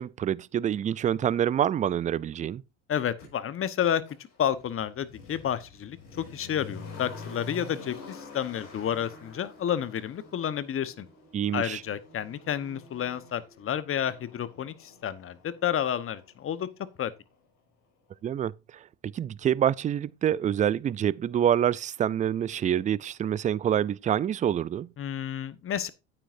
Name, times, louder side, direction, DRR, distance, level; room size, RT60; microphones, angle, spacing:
voice 1, 0.0-2.6 11.3-11.8 18.2-18.5 19.0-24.9, right 10 dB, 20° right, 0.3 m, -26 dB
voice 2, 2.9-4.0 4.4-11.1 11.5-16.7 17.0-17.1 25.0-25.9, left 9 dB, 40° left, 1.1 m, -30 dB
Motor vehicle (road), 3.2-3.3 4.0-17.0 17.3-17.4, left 3 dB, 60° left, 4.9 m, -47 dB
9.7 x 8.9 x 2.6 m
hypercardioid pair, 75°, 35 cm